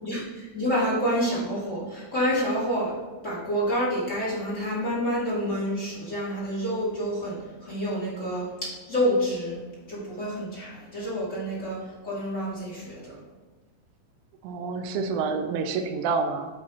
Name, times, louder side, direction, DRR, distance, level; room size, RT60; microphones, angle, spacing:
voice 1, 0.0-3.0 3.2-9.6 9.9-13.1, equal, 40° left, -9 dB, 1.1 m, -28 dB
voice 2, 14.4-16.5, right 4 dB, 85° right, 6 dB, 3.2 m, -28 dB
11.0 x 4.3 x 4.3 m, 1.3 s
omnidirectional pair, 5.5 m